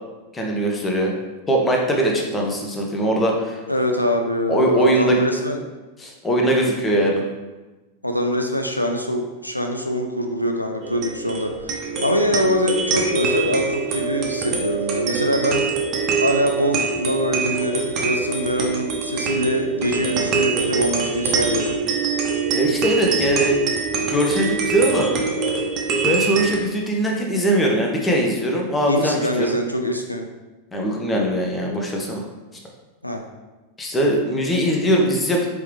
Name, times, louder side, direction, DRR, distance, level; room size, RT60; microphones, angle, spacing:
voice 1, 0.3-1.1 1.5-3.6 4.5-5.2 6.0-7.2 22.5-23.6 24.1-25.1 26.0-29.5 30.7-32.2 33.8-35.5, right 1 dB, 15° left, 0 dB, 0.7 m, -21 dB
voice 2, 3.7-5.6 8.0-15.7 16.2-21.8 28.9-30.3 33.0-33.2, equal, 90° left, 3 dB, 0.3 m, -23 dB
sound 1, 10.8-26.6, right 5 dB, 35° right, 0.8 m, -24 dB
4.6 x 2.9 x 3.2 m, 1.2 s
figure-of-eight pair, 90°, 0 cm